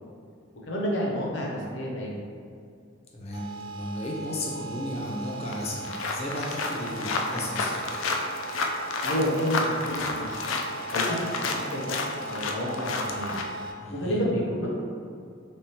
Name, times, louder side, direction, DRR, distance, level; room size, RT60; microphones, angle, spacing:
voice 1, 0.6-2.2 9.0-10.5 10.9-13.4 13.9-14.7, equal, 65° left, -3 dB, 0.8 m, -30 dB
voice 2, 3.1-7.8 13.8-14.2, left 1 dB, 30° left, -4 dB, 0.6 m, -34 dB
sound 1, 3.3-13.7, right 3 dB, 25° right, 0.5 m, -39 dB
sound 2, 5.1-5.2 5.5-13.4, left 3 dB, 80° left, 0.4 m, -31 dB
3.6 x 3.4 x 2.8 m, 2.3 s
head